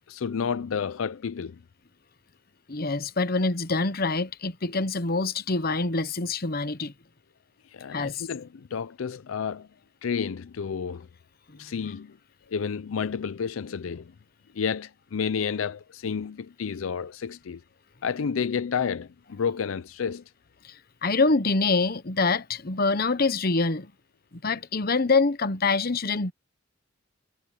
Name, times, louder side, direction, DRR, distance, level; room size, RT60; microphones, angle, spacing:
voice 1, 0.1-1.6 7.7-9.7 10.0-11.1 11.6-12.2 12.5-14.1 14.5-17.6 18.0-20.2, left 6 dB, 80° left, 0.5 m, -30 dB
voice 2, 2.7-6.9 7.9-8.3 20.6-20.8 21.0-23.9 24.3-26.3, left 3 dB, 45° left, 1.0 m, -25 dB
head